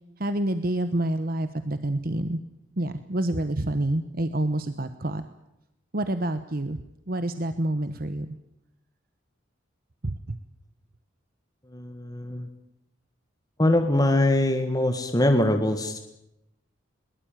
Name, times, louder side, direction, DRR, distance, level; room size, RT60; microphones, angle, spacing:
voice 1, 0.2-2.4 2.8-5.2 5.9-6.8 7.1-8.3 10.0-10.4, right 1 dB, 45° right, 10 dB, 1.1 m, -28 dB
voice 2, 11.7-12.5 13.6-16.0, left 1 dB, 20° left, 6 dB, 1.7 m, -23 dB
22.0 x 21.0 x 9.2 m, 0.86 s
head